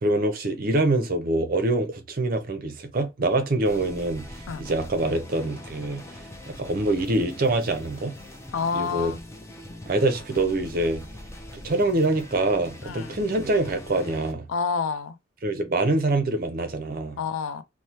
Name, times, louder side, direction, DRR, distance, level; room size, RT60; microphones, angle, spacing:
voice 1, 0.0-6.0 6.5-8.2 8.7-9.1 9.9-11.0 11.6-14.5 15.4-17.2, right 2 dB, 45° right, 0.5 m, -25 dB
sound 1, 3.7-14.3, left 1 dB, 15° left, 0.4 m, -42 dB
voice 2, 8.5-9.2 12.8-13.2 14.5-15.2 17.2-17.6, left 5 dB, 80° left, 0.4 m, -28 dB
3.1 x 2.1 x 2.7 m
head